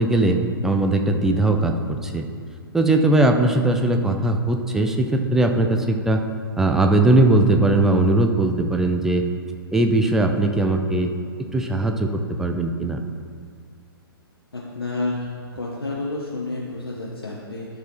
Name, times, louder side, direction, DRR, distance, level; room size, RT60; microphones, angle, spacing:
voice 1, 0.0-2.3 2.7-6.2 6.6-9.2 9.7-11.1 11.4-13.0, right 2 dB, 5° right, 4 dB, 0.4 m, -19 dB
voice 2, 14.5-17.7, left 2 dB, 75° left, -4 dB, 1.3 m, -30 dB
12.5 x 4.9 x 4.3 m, 2.2 s
figure-of-eight pair, 120°, 13 cm